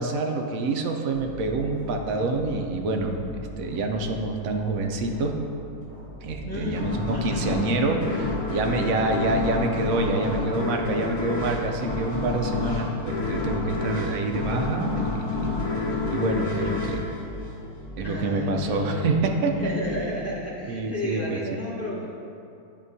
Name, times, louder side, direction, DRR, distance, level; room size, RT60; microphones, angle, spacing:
voice 1, 0.0-3.2 3.6-5.3 6.2-15.5 16.1-17.0 18.0-19.7 20.7-21.6, right 3 dB, 70° right, 3 dB, 0.9 m, -27 dB
sound 1, 1.1-20.3, right 1 dB, 75° left, 1.7 m, -42 dB
voice 2, 6.4-8.3 18.0-19.2 19.6-22.1, left 2 dB, 10° left, -8 dB, 0.9 m, -32 dB
sound 2, 6.7-18.0, left 3 dB, 55° left, 1.5 m, -29 dB
9.6 x 3.7 x 2.7 m, 2.6 s
omnidirectional pair, 1.7 m